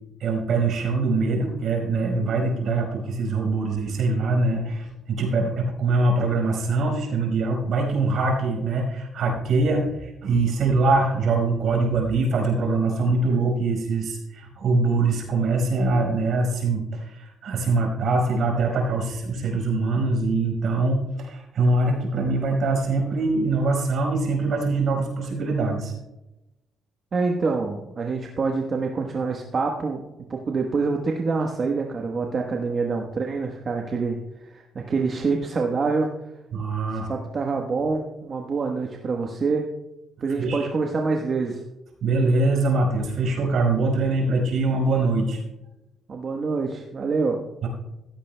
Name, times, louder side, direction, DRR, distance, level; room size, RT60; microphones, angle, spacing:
voice 1, 0.2-25.9 36.5-37.1 40.4-40.7 42.0-45.4 47.6-47.7, right 3 dB, 65° right, 1 dB, 4.8 m, -23 dB
voice 2, 27.1-30.0 30.3-36.1 36.9-39.7 40.2-41.6 46.1-47.4, right 4 dB, 45° right, 2 dB, 1.1 m, -26 dB
15.5 x 14.5 x 2.2 m, 0.98 s
cardioid pair, 90°, 0 cm